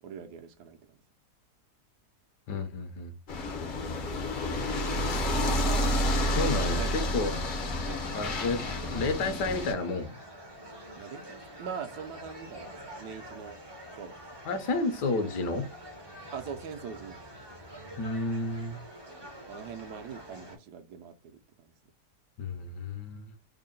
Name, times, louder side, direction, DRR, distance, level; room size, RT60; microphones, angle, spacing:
voice 1, 0.0-1.0 3.8-4.1 6.5-6.9 7.9-8.0 10.9-13.6 14.0-14.1 16.3-17.2 19.5-21.7, right 7 dB, 75° right, 1.2 m, -42 dB
voice 2, 2.5-3.1 6.4-7.3 8.1-10.1 14.5-15.7 18.0-18.8 22.4-23.2, left 3 dB, 80° left, 1.4 m, -31 dB
sound 1, 3.3-9.7, left 1 dB, 55° left, 0.5 m, -29 dB
sound 2, 4.4-20.6, right 1 dB, 30° right, 0.4 m, -46 dB
3.8 x 2.1 x 3.8 m
omnidirectional pair, 1.8 m